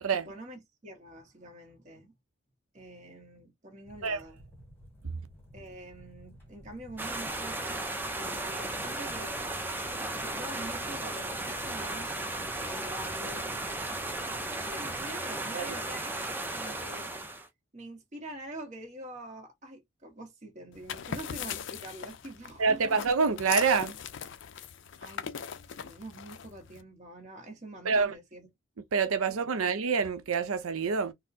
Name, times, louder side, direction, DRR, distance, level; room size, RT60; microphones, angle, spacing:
voice 1, 0.1-2.1 2.7-4.4 5.5-7.7 8.1-9.4 10.2-12.1 12.6-13.5 14.5-16.2 16.5-17.1 17.7-23.0 25.0-25.3 25.8-28.5 29.5-29.7, right 1 dB, 35° right, 1.1 m, -45 dB
sound 1, 3.8-15.1, equal, 10° left, 1.1 m, -53 dB
sound 2, 7.0-17.5, right 2 dB, 10° right, 0.4 m, -35 dB
sound 3, 20.7-26.8, left 8 dB, 60° left, 0.4 m, -40 dB
voice 2, 22.6-23.9 27.8-28.1 28.9-31.1, right 5 dB, 90° right, 0.6 m, -26 dB
4.1 x 2.0 x 2.6 m
head